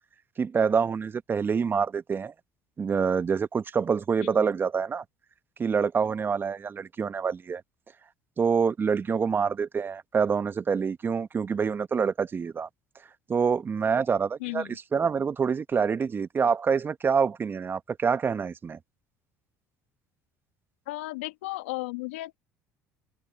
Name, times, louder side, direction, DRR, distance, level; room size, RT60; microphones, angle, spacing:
voice 1, 0.4-2.3 2.8-5.0 5.6-7.6 8.4-12.7 13.3-18.8, right 6 dB, 35° right, 1.2 m, -26 dB
voice 2, 20.9-22.4, left 20 dB, 85° left, 2.2 m, -34 dB
hypercardioid pair, 70°, 6 cm